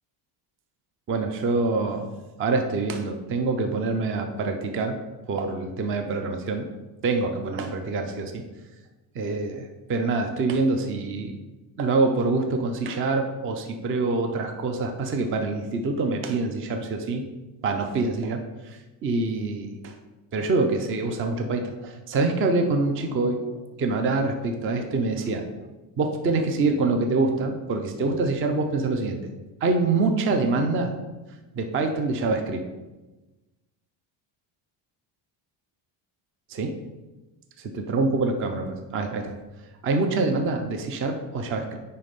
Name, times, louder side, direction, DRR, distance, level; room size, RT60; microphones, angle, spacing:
voice 1, 1.1-2.1 2.4-5.0 5.3-6.7 7.0-8.4 9.1-11.4 11.8-17.2 17.6-20.0 20.3-25.4 26.0-29.3 29.6-30.9 31.6-32.6 36.5-36.7 37.6-39.3 39.8-41.8, right 3 dB, 25° right, 5 dB, 0.4 m, -25 dB
9.4 x 3.3 x 5.2 m, 1.1 s
cardioid pair, 175°, 49 cm